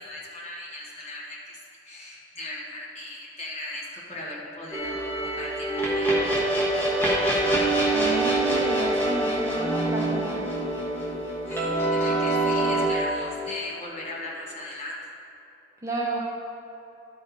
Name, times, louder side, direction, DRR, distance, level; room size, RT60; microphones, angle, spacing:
voice 1, 0.0-7.4 11.4-15.0, left 1 dB, 35° left, -5 dB, 1.5 m, -38 dB
sound 1, 4.7-12.9, right 2 dB, 10° left, 1.3 m, -25 dB
voice 2, 7.9-10.4 15.8-16.2, right 1 dB, 15° right, -4 dB, 0.8 m, -31 dB
12.0 x 4.5 x 4.7 m, 3.0 s
head